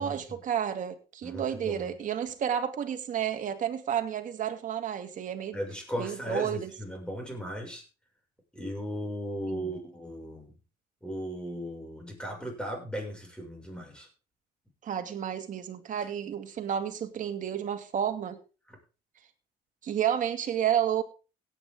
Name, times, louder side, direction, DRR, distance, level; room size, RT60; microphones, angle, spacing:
voice 1, 0.0-5.6 6.0-6.7 9.5-9.7 14.8-18.4 19.8-21.0, right 9 dB, 50° right, 2.3 m, -31 dB
voice 2, 1.2-2.0 5.5-7.8 8.5-10.6 11.0-14.1 16.0-16.1 18.7-18.8, equal, 5° left, 6.5 m, -37 dB
17.0 x 9.6 x 3.8 m
cardioid pair, 110°, 17 cm